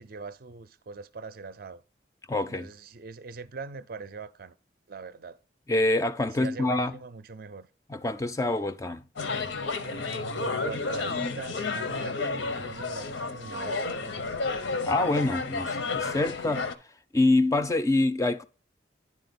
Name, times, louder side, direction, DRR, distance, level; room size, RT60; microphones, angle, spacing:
voice 1, 0.0-1.8 2.5-4.6 4.9-5.4 6.2-7.7 9.7-14.5, right 4 dB, 50° right, 0.4 m, -42 dB
voice 2, 2.3-2.7 5.7-7.0 7.9-9.0 14.9-16.7 17.1-18.4, left 2 dB, 15° left, 0.3 m, -26 dB
sound 1, 9.2-16.7, left 4 dB, 85° left, 0.8 m, -31 dB
9.8 x 4.3 x 3.9 m
head